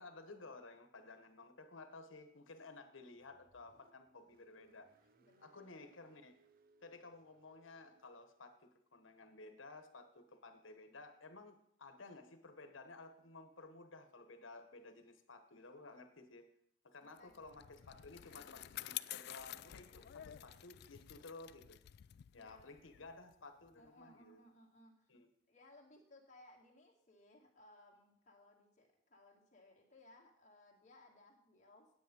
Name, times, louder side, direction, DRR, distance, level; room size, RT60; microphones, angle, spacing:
voice 1, 0.0-4.9 5.4-6.4 6.8-16.5 16.8-21.8 22.3-24.4 25.1-25.3, left 3 dB, 90° left, 8 dB, 1.3 m, -55 dB
Car, 3.1-8.6, right 3 dB, 50° right, 0.6 m, -72 dB
voice 2, 5.2-6.1 17.0-17.4 18.2-18.6 19.8-20.2 22.3-22.7 23.7-25.1 25.5-31.9, left 1 dB, 40° left, -2 dB, 2.3 m, -64 dB
Bicycle, 17.2-23.9, left 14 dB, 55° left, 0.3 m, -50 dB
9.7 x 8.7 x 5.4 m, 0.70 s
head